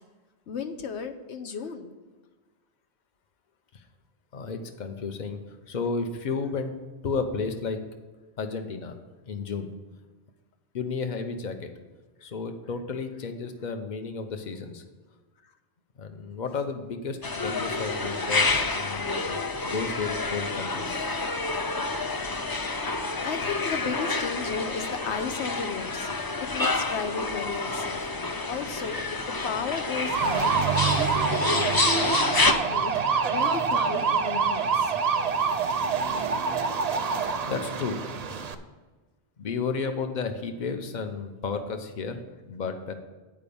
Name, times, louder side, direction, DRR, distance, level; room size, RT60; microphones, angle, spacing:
voice 1, 0.5-1.9 15.4-15.5 23.2-32.9 33.2-34.9, left 5 dB, 85° left, 6 dB, 1.1 m, -35 dB
voice 2, 4.3-6.7 7.0-7.8 8.4-9.0 9.3-9.7 10.7-11.7 12.2-14.8 16.0-21.3 37.2-38.0 39.4-42.2 42.5-42.9, left 4 dB, 45° left, 7 dB, 0.9 m, -32 dB
sound 1, 17.2-32.5, left 3 dB, 30° left, 0.4 m, -28 dB
sound 2, 30.0-38.5, right 5 dB, 45° right, 0.6 m, -26 dB
8.7 x 5.1 x 6.9 m, 1.3 s
omnidirectional pair, 1.1 m